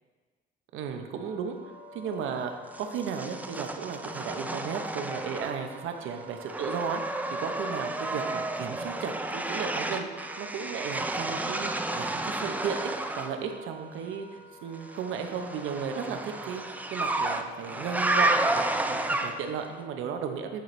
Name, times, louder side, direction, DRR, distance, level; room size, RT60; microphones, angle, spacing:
voice 1, 0.7-20.6, right 6 dB, 85° right, 5 dB, 0.7 m, -35 dB
Wind instrument woodwind instrument, 0.9-20.0, equal, 45° right, 1.3 m, -48 dB
sound 1, 2.7-5.8 6.1-13.4 14.9-19.6, right 2 dB, 10° right, 0.4 m, -31 dB
9.2 x 4.3 x 3.1 m, 1.4 s
cardioid pair, 90°, 20 cm